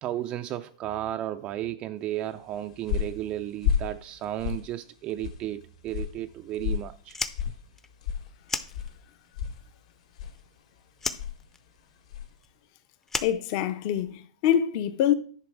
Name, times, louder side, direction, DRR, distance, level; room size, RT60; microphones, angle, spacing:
voice 1, 0.0-7.2, right 13 dB, 30° right, 0.4 m, -33 dB
sound 1, 2.3-12.4, left 8 dB, 65° left, 2.8 m, -35 dB
Fire, 7.0-9.3 9.6-10.6 11.0-14.1, left 4 dB, 10° left, 0.6 m, -35 dB
voice 2, 13.2-15.1, left 10 dB, 45° left, 0.9 m, -25 dB
10.5 x 4.0 x 6.1 m
hypercardioid pair, 135°, 4 cm